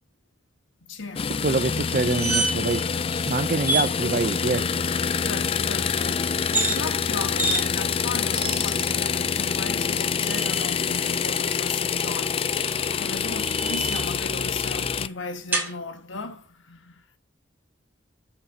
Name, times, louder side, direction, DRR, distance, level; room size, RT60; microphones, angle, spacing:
voice 1, 0.8-1.4 5.2-17.2, left 3 dB, 80° left, 1.5 m, -36 dB
sound 1, 1.2-15.1, left 6 dB, 30° left, 0.3 m, -26 dB
voice 2, 1.4-2.9 3.2-4.6, right 3 dB, 40° right, 0.5 m, -25 dB
sound 2, 1.9-2.8 3.1-3.2 3.6-3.9 6.4-6.8 7.4-7.6 8.3-8.9 9.9-10.7 12.6-14.2 15.5-15.7, right 2 dB, 10° right, 2.3 m, -28 dB
12.5 x 6.8 x 2.7 m
head